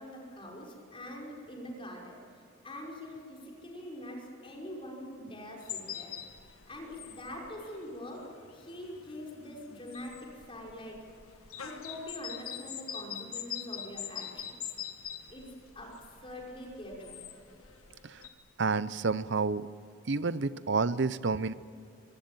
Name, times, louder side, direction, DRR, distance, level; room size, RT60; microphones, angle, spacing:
voice 1, 0.0-6.1 6.7-11.0 11.3-14.8 15.3-15.9 16.2-17.3, left 1 dB, 25° left, -2 dB, 5.6 m, -44 dB
sound 1, 5.6-18.3, left 9 dB, 85° left, 1.8 m, -43 dB
voice 2, 18.6-19.7 20.1-21.5, right 4 dB, 55° right, 16 dB, 0.7 m, -29 dB
25.0 x 19.5 x 9.0 m, 2.5 s
head